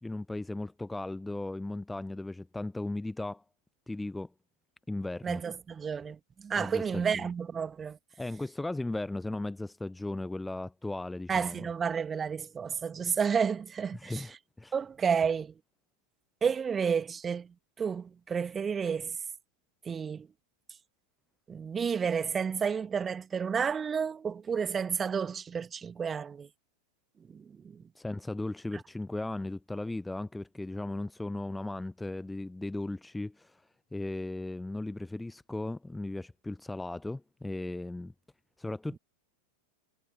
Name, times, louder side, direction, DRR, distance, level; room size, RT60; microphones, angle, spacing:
voice 1, 0.0-3.4 3.9-4.3 4.9-5.4 6.5-7.3 8.2-11.7 13.9-14.7 28.0-33.7 33.9-38.1 38.6-39.0, left 2 dB, 5° left, 0.7 m, -36 dB
voice 2, 5.2-8.0 11.3-14.2 14.7-15.5 16.4-17.5 17.8-19.2 19.9-20.3 21.5-26.5 27.3-27.8, right 6 dB, 20° right, 1.9 m, -31 dB
figure-of-eight pair, 90°, 0 cm